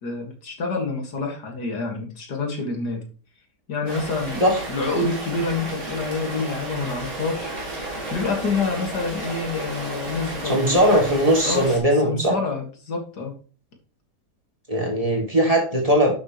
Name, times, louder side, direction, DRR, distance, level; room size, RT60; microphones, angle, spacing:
voice 1, 0.0-3.0 3.7-4.4 4.7-7.5 8.1-11.1 11.5-11.7 12.0-13.4, left 4 dB, 75° left, 2 dB, 2.6 m, -27 dB
Rain, 3.9-11.8, right 2 dB, 60° right, 3.3 m, -33 dB
voice 2, 10.4-12.3 14.7-16.1, equal, 20° right, 0 dB, 2.7 m, -19 dB
11.0 x 6.7 x 3.2 m, 0.39 s
omnidirectional pair, 1.8 m